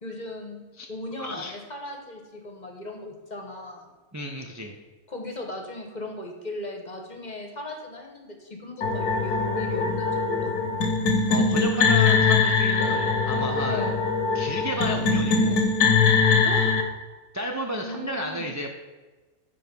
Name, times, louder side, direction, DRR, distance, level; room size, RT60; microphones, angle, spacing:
voice 1, 0.0-0.6 0.9-3.9 5.1-10.7 13.6-14.0 16.4-16.8 17.8-18.5, left 1 dB, 30° left, 2 dB, 1.2 m, -37 dB
voice 2, 1.2-1.5 4.1-4.7 11.3-13.9 14.3-15.7 17.3-18.7, equal, 25° right, 1 dB, 0.4 m, -32 dB
sound 1, 8.8-16.8, left 4 dB, 75° left, 1.5 m, -22 dB
7.7 x 4.8 x 6.8 m, 1.3 s
omnidirectional pair, 1.6 m